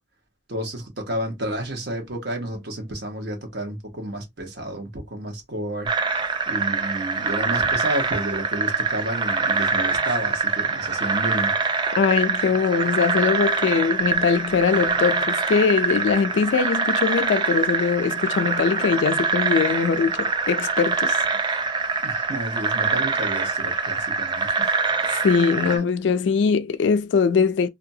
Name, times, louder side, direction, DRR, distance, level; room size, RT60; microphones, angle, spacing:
voice 1, 0.5-6.2 6.5-11.5 22.0-24.7 25.7-25.8, right 1 dB, 55° right, 1.1 m, -31 dB
sound 1, 5.9-25.8, right 4 dB, 25° right, 0.3 m, -24 dB
voice 2, 12.0-21.2 25.1-27.7, left 5 dB, 65° left, 0.3 m, -21 dB
2.6 x 2.3 x 2.7 m
head